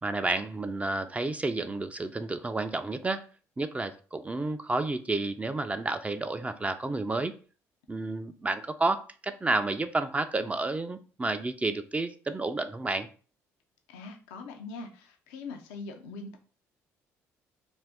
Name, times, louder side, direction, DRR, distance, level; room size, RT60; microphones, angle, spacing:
voice 1, 0.0-3.2 3.6-7.3 7.9-13.1, right 2 dB, 20° right, 9 dB, 0.4 m, -30 dB
voice 2, 13.9-16.4, left 3 dB, 85° left, 5 dB, 0.4 m, -42 dB
2.5 x 2.5 x 3.4 m, 0.39 s
hypercardioid pair, 60°, 7 cm